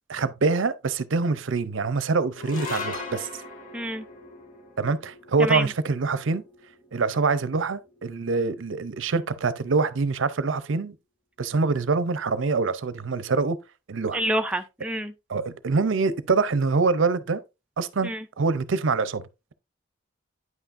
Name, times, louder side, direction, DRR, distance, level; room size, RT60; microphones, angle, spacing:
voice 1, 0.1-3.3 4.8-6.4 6.9-11.0 11.4-13.6 13.9-14.2 15.3-17.4 17.8-19.2, right 4 dB, 75° right, 0.6 m, -25 dB
sound 1, 2.3-8.8, left 4 dB, 40° left, 1.9 m, -40 dB
voice 2, 3.7-4.1 5.4-5.7 14.1-15.1 18.0-18.2, right 1 dB, 5° right, 0.4 m, -27 dB
9.3 x 5.7 x 2.5 m
head